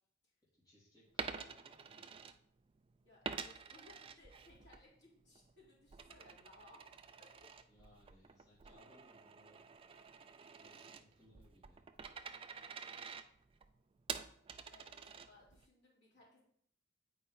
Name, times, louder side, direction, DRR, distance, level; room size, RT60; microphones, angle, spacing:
voice 1, 0.5-2.2 7.7-9.7 10.6-11.8, left 1 dB, 20° left, -8 dB, 2.7 m, -67 dB
Coin (dropping), 1.1-2.8 3.2-4.8 5.2-15.7, right 6 dB, 30° right, 0.4 m, -48 dB
voice 2, 3.0-6.8 7.2-7.5 8.1-8.2 14.7-15.0 15.3-16.5, left 2 dB, 60° left, -6 dB, 3.5 m, -63 dB
8.9 x 4.9 x 4.3 m, 0.65 s
head